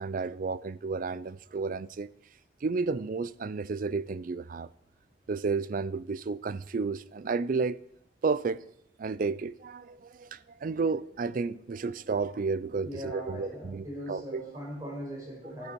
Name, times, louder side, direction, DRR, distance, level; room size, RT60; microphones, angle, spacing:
voice 1, 0.0-2.1 2.6-4.7 5.3-7.8 8.2-8.6 9.0-14.4 15.6-15.7, right 4 dB, 50° right, 0.4 m, -32 dB
voice 2, 12.8-15.7, equal, 20° right, 5.1 m, -40 dB
14.0 x 12.5 x 4.5 m
head